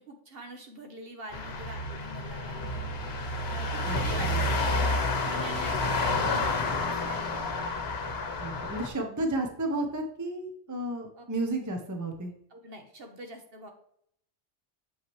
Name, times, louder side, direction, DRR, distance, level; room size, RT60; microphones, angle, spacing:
voice 1, 0.0-2.9 3.5-7.5 11.2-11.3 12.5-13.7, right 2 dB, 55° right, 4 dB, 1.2 m, -44 dB
sound 1, 1.3-8.9, left 2 dB, 65° left, 1.1 m, -30 dB
voice 2, 3.8-4.4 8.4-12.3, right 2 dB, 15° right, 4 dB, 0.8 m, -32 dB
7.3 x 5.7 x 3.1 m, 0.69 s
omnidirectional pair, 1.2 m